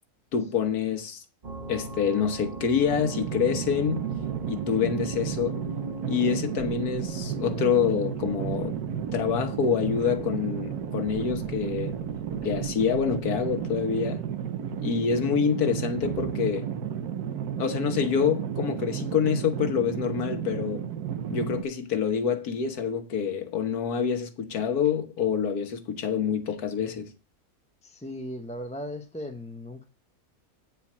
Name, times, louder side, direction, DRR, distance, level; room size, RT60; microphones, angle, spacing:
voice 1, 0.3-1.2 1.7-4.1 4.5-5.6 6.1-8.8 9.1-11.9 12.4-14.2 14.8-16.7 17.6-20.9 21.3-27.1, left 7 dB, 85° left, 1.6 m, -26 dB
sound 1, 1.4-16.5, right 3 dB, 30° right, 1.2 m, -41 dB
sound 2, 2.9-21.6, right 8 dB, 85° right, 1.3 m, -33 dB
voice 2, 27.8-29.8, left 1 dB, 5° left, 0.6 m, -37 dB
9.1 x 4.6 x 7.2 m
omnidirectional pair, 1.6 m